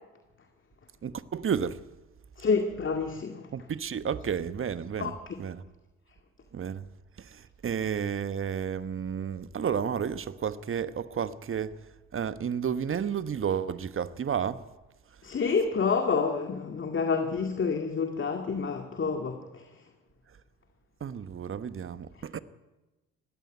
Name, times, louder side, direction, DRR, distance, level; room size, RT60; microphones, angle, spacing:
voice 1, 1.0-1.8 3.5-5.1 5.4-5.6 6.5-6.8 7.2-11.7 12.1-14.6 21.0-22.4, right 7 dB, 35° right, 1.2 m, -31 dB
voice 2, 2.4-3.5 5.0-5.4 15.2-19.6, left 5 dB, 35° left, 2.1 m, -28 dB
19.5 x 16.0 x 9.2 m
hypercardioid pair, 55°, 35 cm